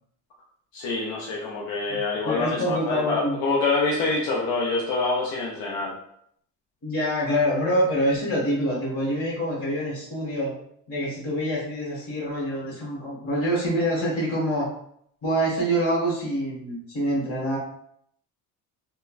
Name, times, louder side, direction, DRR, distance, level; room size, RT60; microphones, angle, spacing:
voice 1, 0.7-6.0, left 3 dB, 70° left, -3 dB, 0.6 m, -26 dB
voice 2, 1.9-3.4 6.8-10.5 10.9-14.7 15.2-17.6, equal, 35° left, -5 dB, 1.3 m, -26 dB
3.1 x 2.2 x 2.3 m, 0.69 s
cardioid pair, 160°, 39 cm